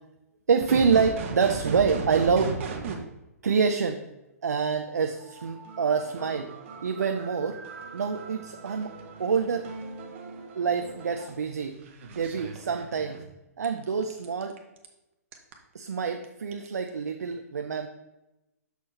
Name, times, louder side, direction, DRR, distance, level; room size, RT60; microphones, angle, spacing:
voice 1, 0.5-2.7 3.4-4.0 4.4-6.5 6.8-7.6 7.9-8.9 9.2-9.7 10.6-11.8 12.1-13.2 13.6-14.6 15.7-17.9, right 5 dB, 75° right, 6 dB, 0.5 m, -26 dB
sound 1, 0.6-2.9 5.1-13.2 13.6-14.9 15.3-15.5 16.2-16.3 16.5-16.9, right 5 dB, 50° right, 1.0 m, -38 dB
6.7 x 6.4 x 3.2 m, 0.95 s
figure-of-eight pair, 125°, 9 cm